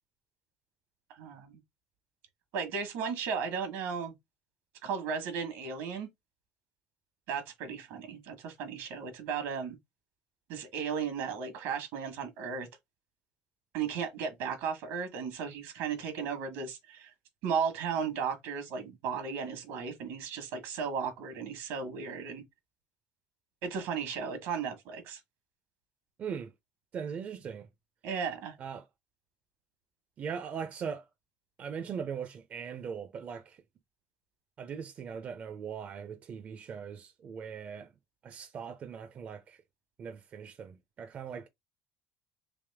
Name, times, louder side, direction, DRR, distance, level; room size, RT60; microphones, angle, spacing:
voice 1, 1.1-1.6 2.5-4.1 4.8-6.1 7.3-9.8 10.5-12.7 13.7-17.1 17.4-22.4 23.6-25.2 28.0-28.5, right 6 dB, 80° right, 1.4 m, -35 dB
voice 2, 26.2-26.5 26.9-27.7 28.6-28.9 30.2-31.1 31.6-33.6 34.6-37.9 38.2-39.6 40.0-41.5, right 7 dB, 40° right, 0.5 m, -40 dB
3.5 x 3.0 x 3.4 m
cardioid pair, 110°, 4 cm